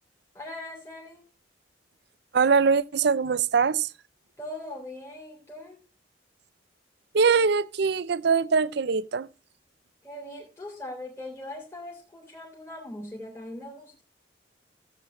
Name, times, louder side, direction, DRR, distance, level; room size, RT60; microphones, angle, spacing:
voice 1, 0.3-1.2 4.4-5.8 10.0-14.0, left 1 dB, 15° left, 2.8 m, -40 dB
voice 2, 2.3-3.9 7.1-9.3, right 5 dB, 60° right, 0.5 m, -22 dB
16.0 x 7.9 x 3.1 m
head